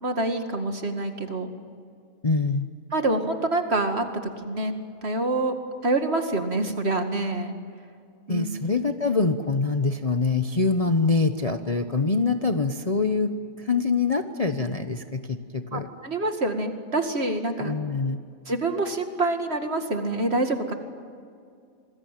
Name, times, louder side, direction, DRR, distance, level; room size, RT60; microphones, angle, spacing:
voice 1, 0.0-1.5 2.9-4.7 5.0-5.5 5.8-7.5 8.3-8.5 15.7-17.7 18.5-20.7, right 2 dB, 45° right, 6 dB, 2.4 m, -26 dB
voice 2, 2.2-2.7 8.3-15.9 17.6-18.2, left 4 dB, 30° left, 7 dB, 0.9 m, -24 dB
27.5 x 20.5 x 9.2 m, 2.3 s
omnidirectional pair, 1.5 m